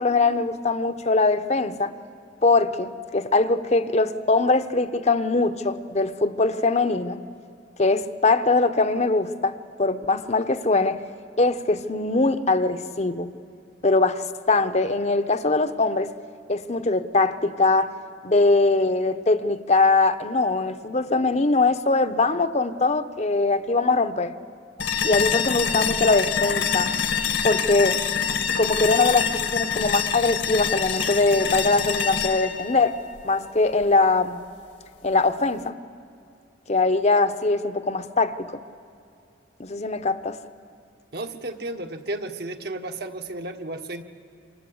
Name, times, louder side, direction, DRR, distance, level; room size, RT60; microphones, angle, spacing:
voice 1, 0.0-1.9 2.4-7.2 7.8-11.0 11.4-13.3 13.8-16.1 16.5-17.9 18.2-24.3 25.0-26.9 27.4-28.0 28.6-33.0 33.2-34.4 35.0-35.8 36.7-38.6 39.6-40.4, left 3 dB, 35° left, 0.9 m, -22 dB
sound 1, 24.8-33.8, left 7 dB, 75° left, 1.9 m, -26 dB
voice 2, 41.1-44.0, right 2 dB, 55° right, 1.5 m, -33 dB
28.5 x 26.5 x 8.0 m
head